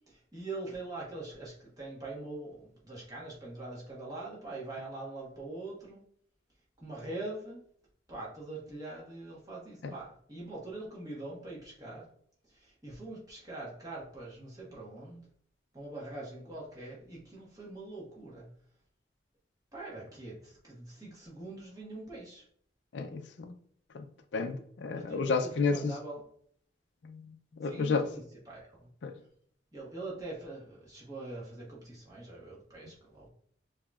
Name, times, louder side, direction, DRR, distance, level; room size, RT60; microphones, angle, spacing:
voice 1, 0.1-6.0 6.8-7.6 8.1-12.1 12.5-15.2 15.7-18.5 19.7-22.5 24.9-26.2 27.6-28.9 29.7-33.3, right 2 dB, 20° right, 1.4 m, -43 dB
voice 2, 22.9-23.5 23.9-24.1 24.3-25.9 27.0-27.2 27.6-28.1 29.0-29.1, left 4 dB, 80° left, 0.4 m, -31 dB
6.8 x 2.8 x 2.4 m
head